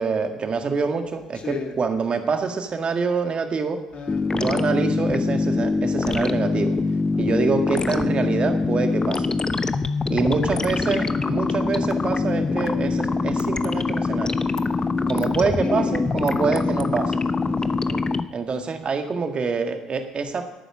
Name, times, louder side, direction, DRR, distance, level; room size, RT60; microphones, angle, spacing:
voice 1, 0.0-3.8 4.3-6.8 7.2-9.3 10.1-14.4 15.1-17.1 17.9-18.0 18.3-20.4, right 4 dB, 40° right, 6 dB, 1.7 m, -25 dB
voice 2, 1.3-1.7 3.9-4.3 7.1-7.5 10.1-10.9 15.6-15.9 16.3-16.9 17.3-18.4, left 5 dB, 45° left, 3 dB, 2.4 m, -38 dB
sound 1, 4.1-18.2, left 3 dB, 25° left, 0.7 m, -24 dB
12.0 x 9.1 x 6.1 m, 0.98 s
hypercardioid pair, 50°, 3 cm